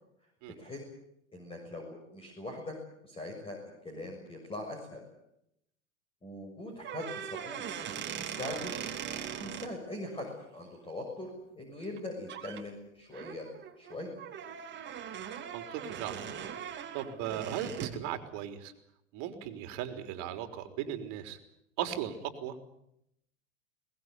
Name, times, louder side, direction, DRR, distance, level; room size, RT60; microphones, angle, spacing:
voice 1, 1.3-2.7 3.0-3.6 3.8-5.0 6.2-7.6 7.9-8.8 9.4-10.3 10.5-13.5 13.8-14.1, left 1 dB, 15° left, 2 dB, 6.7 m, -41 dB
sound 1, 6.8-9.7 11.8-12.0 12.3-12.6 13.1-18.0, right 8 dB, 30° right, 3.1 m, -40 dB
voice 2, 15.5-16.2 16.9-18.7 19.1-21.4 21.8-22.5, right 10 dB, 45° right, 7 dB, 3.9 m, -37 dB
22.5 x 20.0 x 9.7 m, 0.78 s
hypercardioid pair, 110°, 38 cm